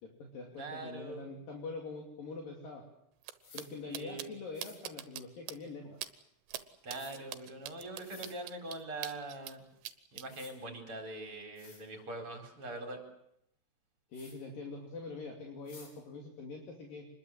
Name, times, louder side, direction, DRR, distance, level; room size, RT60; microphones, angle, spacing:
voice 1, 0.0-2.8 3.5-6.0 14.1-17.1, left 3 dB, 55° left, 0 dB, 4.2 m, -44 dB
voice 2, 0.6-1.4 3.8-4.3 6.8-9.7 10.1-13.0, right 2 dB, 30° right, 3 dB, 4.9 m, -43 dB
sound 1, 3.2-3.3 3.6-3.7 3.9-4.3 4.6-5.2 5.5-5.6 6.0-6.1 6.5-6.6 6.9-9.5 9.8-10.2, right 12 dB, 80° right, 3.3 m, -42 dB
sound 2, 3.4-3.7 4.5-4.8 6.9-7.1 8.0-8.3 9.8-9.9 10.3-10.5 11.2-11.3 11.6-11.8 14.1-14.3 15.7-15.9, left 4 dB, 75° left, 7.4 m, -54 dB
26.5 x 21.0 x 7.8 m, 0.78 s
omnidirectional pair, 4.9 m